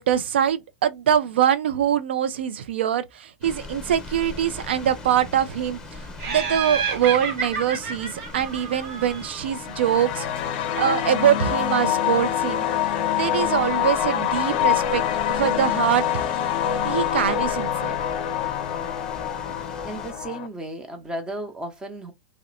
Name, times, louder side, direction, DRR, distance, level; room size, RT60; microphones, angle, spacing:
voice 1, 0.0-10.3 10.7-12.7 13.1-16.0 16.8-18.0, right 9 dB, 80° right, 0.4 m, -23 dB
sound 1, 3.4-20.1, left 2 dB, 10° left, 1.0 m, -40 dB
Laughter, 6.2-9.5, right 6 dB, 50° right, 1.1 m, -30 dB
sound 2, 9.4-20.5, left 10 dB, 55° left, 0.5 m, -25 dB
voice 2, 19.5-22.1, right 1 dB, 15° right, 0.8 m, -35 dB
2.8 x 2.1 x 2.5 m
hypercardioid pair, 115°, 6 cm